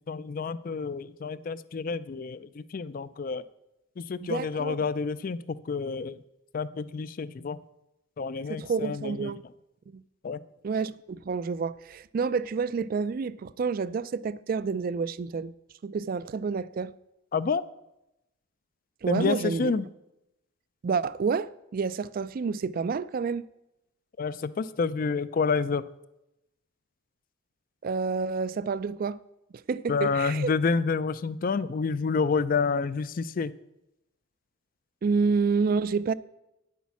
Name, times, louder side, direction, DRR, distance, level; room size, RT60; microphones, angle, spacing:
voice 1, 0.1-3.4 4.0-6.2 6.5-7.6 8.2-9.3 10.2-10.4 17.3-17.6 19.1-19.8 24.2-25.8 29.9-33.5, left 5 dB, 40° left, 0.4 m, -29 dB
voice 2, 4.2-4.8 8.5-9.4 9.9-10.0 10.6-15.5 15.8-16.9 19.0-19.7 20.8-23.5 27.8-29.2 29.7-30.5 35.0-36.1, right 5 dB, 45° right, 0.3 m, -29 dB
9.4 x 8.3 x 5.9 m
head